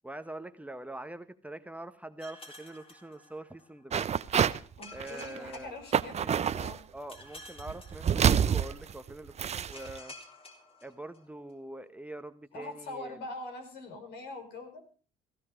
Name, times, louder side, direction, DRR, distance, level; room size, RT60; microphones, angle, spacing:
voice 1, 0.0-4.1 4.9-5.8 6.2-6.4 6.9-10.1 10.8-13.2, right 1 dB, 5° right, 10 dB, 1.1 m, -44 dB
sound 1, 2.2-3.8 4.8-6.5 7.1-8.7 9.7-11.5, left 2 dB, 30° left, 3.9 m, -51 dB
sound 2, 3.9-4.6 5.0-5.5 5.9-6.8 7.6-10.0, right 8 dB, 35° right, 0.7 m, -27 dB
voice 2, 4.8-6.8 12.5-14.8, left 2 dB, 65° left, 5 dB, 5.1 m, -43 dB
16.5 x 15.0 x 5.0 m, 0.39 s
hypercardioid pair, 70°, 19 cm